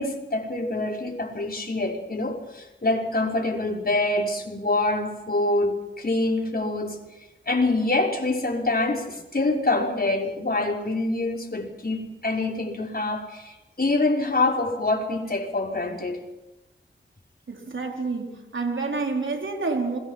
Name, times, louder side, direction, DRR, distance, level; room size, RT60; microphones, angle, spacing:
voice 1, 0.0-7.0 7.5-16.2, left 2 dB, 50° left, 5.7 m, -25 dB
voice 2, 17.5-20.0, right 3 dB, 80° right, 4.3 m, -28 dB
27.5 x 22.5 x 6.0 m
cardioid pair, 40°, 20 cm